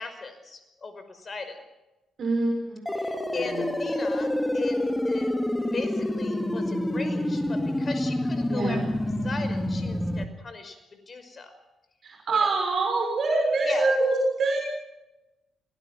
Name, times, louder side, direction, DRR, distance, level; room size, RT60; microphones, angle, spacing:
voice 1, 0.0-1.6 3.0-5.4 5.7-8.8 9.2-10.8 11.1-11.5 12.3-12.5 13.7-13.9, left 4 dB, 40° left, 9 dB, 5.5 m, -37 dB
voice 2, 2.2-2.8 3.3-3.8 8.5-8.8 12.0-14.6, right 3 dB, 55° right, 0 dB, 6.6 m, -25 dB
sound 1, 2.9-10.3, left 1 dB, 10° left, 2.7 m, -27 dB
26.5 x 20.0 x 6.1 m, 0.99 s
hypercardioid pair, 45°, 0 cm